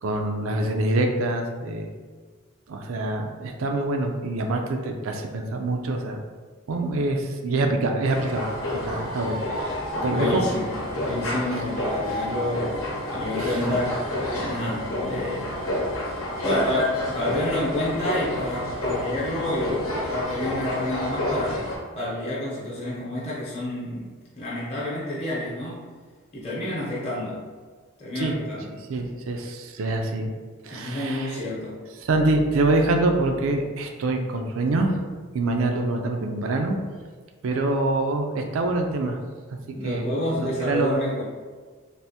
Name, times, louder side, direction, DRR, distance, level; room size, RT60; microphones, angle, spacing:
voice 1, 0.0-1.9 2.7-6.2 6.7-8.5 8.8-9.4 10.0-10.4 13.4-13.5 28.2-28.3 28.7-30.3 30.6-31.4 32.0-35.0 35.3-36.8 37.4-39.2 39.7-40.1 40.4-41.0, right 2 dB, 70° right, 3 dB, 0.4 m, -25 dB
sound 1, 8.1-21.8, left 1 dB, 75° left, 0.8 m, -29 dB
voice 2, 10.0-10.7 11.0-12.7 13.1-15.5 16.4-21.6 21.9-24.1 24.3-25.9 26.3-27.4 28.0-28.6 30.7-31.8 39.7-41.2, left 1 dB, 30° left, -7 dB, 0.8 m, -29 dB
3.4 x 2.5 x 2.8 m, 1.5 s
head